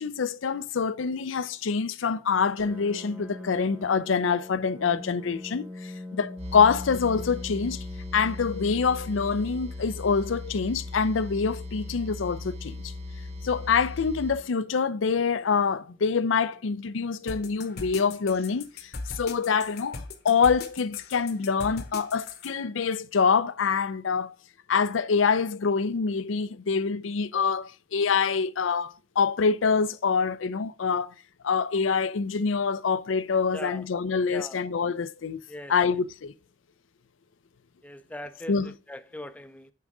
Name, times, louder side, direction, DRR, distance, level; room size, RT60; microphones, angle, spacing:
voice 1, 0.0-7.8 8.1-12.9 13.4-20.0 20.2-24.3 24.7-31.1 31.4-35.4 35.7-36.3 38.5-38.8, left 5 dB, 85° left, 0.5 m, -26 dB
Piano, 2.6-18.0, left 2 dB, 10° right, 1.0 m, -45 dB
sound 1, 6.4-14.3, left 2 dB, 35° right, 0.7 m, -38 dB
sound 2, 17.3-22.5, left 3 dB, 55° left, 0.9 m, -39 dB
voice 2, 33.5-33.8 34.3-34.6 35.5-35.7 37.8-39.7, left 1 dB, 10° left, 0.5 m, -40 dB
8.7 x 3.8 x 4.7 m
head